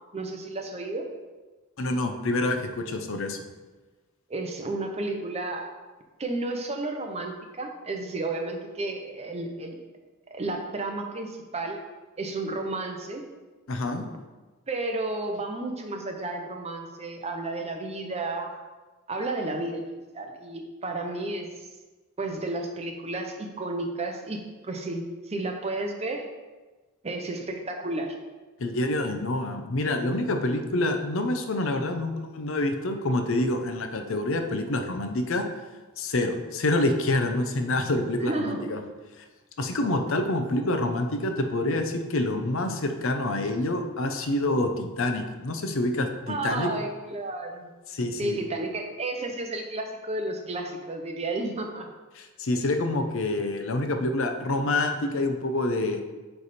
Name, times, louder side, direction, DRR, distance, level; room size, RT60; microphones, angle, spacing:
voice 1, 0.1-1.1 4.3-5.7 6.2-9.8 10.3-11.8 12.2-13.2 14.7-18.5 19.1-19.9 20.1-21.5 22.2-26.2 27.0-28.2 38.2-38.7 46.3-47.7 48.2-51.9 52.5-52.7, right 2 dB, 30° right, 3 dB, 0.7 m, -32 dB
voice 2, 1.8-3.4 13.7-14.0 28.6-35.5 36.0-38.8 39.2-39.3 39.6-46.7 47.9-48.4 52.1-56.0, left 2 dB, 65° left, 6 dB, 0.7 m, -27 dB
9.1 x 3.4 x 4.2 m, 1.2 s
head